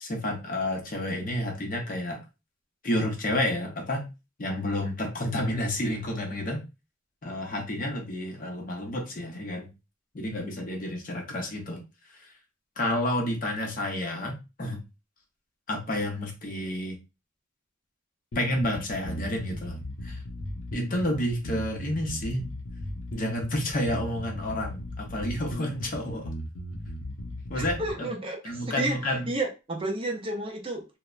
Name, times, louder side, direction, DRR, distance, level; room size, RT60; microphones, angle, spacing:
voice 1, 0.0-2.2 2.8-4.1 4.4-6.6 7.2-9.7 10.1-11.8 12.8-14.8 15.7-17.0 18.3-19.8 20.0-20.2 20.7-22.5 23.1-26.3 27.5-28.1 28.4-29.3, left 1 dB, 45° left, 0.7 m, -30 dB
sound 1, 18.3-27.9, left 1 dB, 80° left, 0.6 m, -37 dB
voice 2, 27.5-30.8, right 2 dB, 25° right, 0.5 m, -31 dB
3.1 x 2.0 x 2.4 m
head